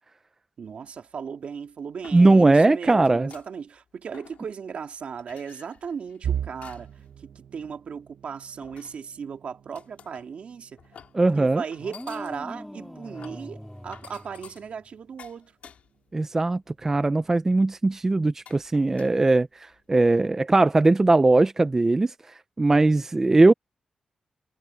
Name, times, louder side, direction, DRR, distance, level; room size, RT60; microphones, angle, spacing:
voice 1, 0.6-10.8 11.4-15.5, right 6 dB, 60° right, 2.3 m, -37 dB
sound 1, 1.0-1.1 1.7-2.6 3.0-3.8 4.1-4.7 5.1-7.1 7.4-7.7 8.6-9.2 9.7-10.3 10.8-11.2 11.7-16.2 16.5-16.8 17.2-17.3 18.0-18.1 18.5-19.8, left 7 dB, 75° left, 4.1 m, -51 dB
voice 2, 2.1-3.3 11.1-11.6 16.1-23.5, right 2 dB, 20° right, 0.4 m, -20 dB
sound 2, 6.2-18.1 18.5-18.8 19.1-19.3 20.2-20.6, right 9 dB, 80° right, 0.6 m, -40 dB
sound 3, 11.8-14.9, equal, 5° left, 2.8 m, -41 dB
wide cardioid pair, 140°, 2 cm